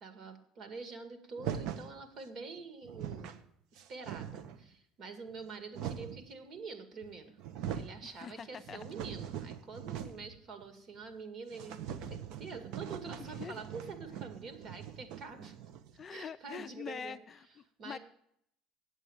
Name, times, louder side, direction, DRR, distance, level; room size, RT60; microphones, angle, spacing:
voice 1, 0.0-3.4 3.7-7.4 7.7-15.6 16.1-17.2 17.8-18.0, right 4 dB, 45° right, 7 dB, 2.1 m, -46 dB
sound 1, 1.4-1.9 2.6-2.7 2.8-3.4 3.8-4.6 5.3-6.3 7.0-7.1 7.4-8.0 8.4-10.3 10.6-10.7 11.0-11.1 11.5-16.0, right 9 dB, 70° right, 0.9 m, -42 dB
voice 2, 8.0-8.8 13.2-13.6 16.0-18.0, left 7 dB, 30° left, 11 dB, 0.4 m, -45 dB
8.3 x 8.2 x 9.0 m, 0.73 s
cardioid pair, 135°, 0 cm